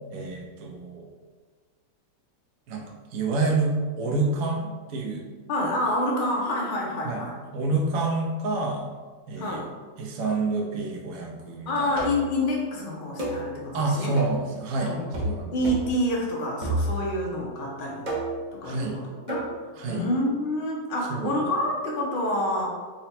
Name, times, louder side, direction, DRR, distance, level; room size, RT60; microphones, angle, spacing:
voice 1, 0.1-1.0 2.7-5.2 7.0-7.2 7.5-8.9 9.3-9.6 10.0-11.9 13.7-15.0 15.2-15.6 18.6-19.0 19.8-20.0 21.1-21.4, right 3 dB, 65° right, 1 dB, 1.0 m, -28 dB
voice 2, 5.5-7.4 9.4-9.7 11.7-14.2 14.8-18.1 18.5-19.4 19.9-22.7, left 1 dB, 75° left, -3 dB, 0.4 m, -28 dB
sound 1, 12.0-12.3 13.2-13.5 14.2-14.5 15.1-15.4 15.6-15.9 16.6-17.2 18.1-18.5 19.3-19.5, right 1 dB, 45° right, 0.6 m, -29 dB
3.9 x 2.2 x 4.1 m, 1.5 s
omnidirectional pair, 1.9 m